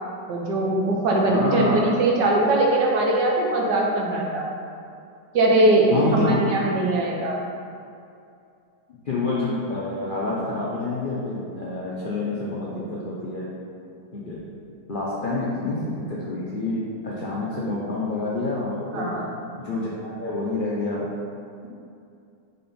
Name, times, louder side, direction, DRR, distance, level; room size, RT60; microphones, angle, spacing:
voice 1, 0.3-4.5 5.3-7.4 18.9-19.3, right 2 dB, 70° right, -2 dB, 1.5 m, -21 dB
voice 2, 1.2-1.9 5.9-6.4 9.0-13.5 14.1-14.4 14.9-19.1 19.6-21.1, left 2 dB, 90° left, -6 dB, 0.4 m, -28 dB
5.4 x 4.1 x 4.3 m, 2.5 s
omnidirectional pair, 2.0 m